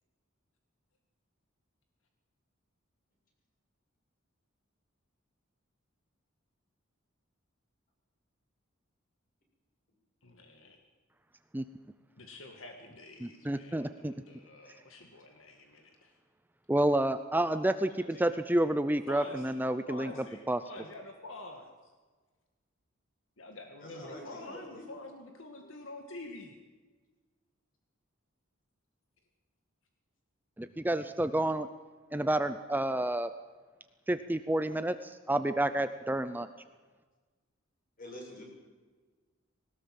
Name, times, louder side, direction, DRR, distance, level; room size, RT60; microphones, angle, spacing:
voice 1, 10.2-10.8 12.2-16.2 19.1-19.6 19.9-21.9 23.4-26.5, left 2 dB, 75° left, 4 dB, 2.1 m, -47 dB
voice 2, 13.2-14.1 16.7-20.1 20.5-20.6 30.6-31.7 32.1-33.3 34.1-36.5, right 1 dB, 10° right, 11 dB, 0.6 m, -29 dB
voice 3, 23.8-24.9 38.0-38.4, left 1 dB, 45° left, 0 dB, 7.0 m, -46 dB
21.0 x 18.5 x 7.7 m, 1.4 s
head